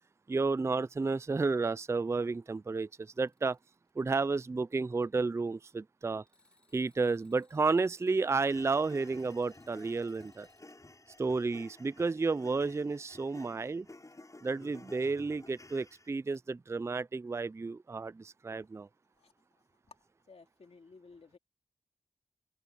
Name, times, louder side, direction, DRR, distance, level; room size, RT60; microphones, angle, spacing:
voice 1, 0.3-3.6 4.0-6.2 6.7-10.5 11.2-13.9 14.4-18.9, right 4 dB, 25° right, 0.3 m, -32 dB
Alarm, 0.9-1.9 2.5-3.9 6.3-10.8 14.1-14.2 16.3-16.4, left 3 dB, 10° left, 4.4 m, -70 dB
sound 1, 8.5-16.1, left 2 dB, 25° left, 7.4 m, -54 dB
voice 2, 19.2-19.9 20.3-21.4, left 4 dB, 60° left, 2.6 m, -57 dB
open air
wide cardioid pair, 80°, 12 cm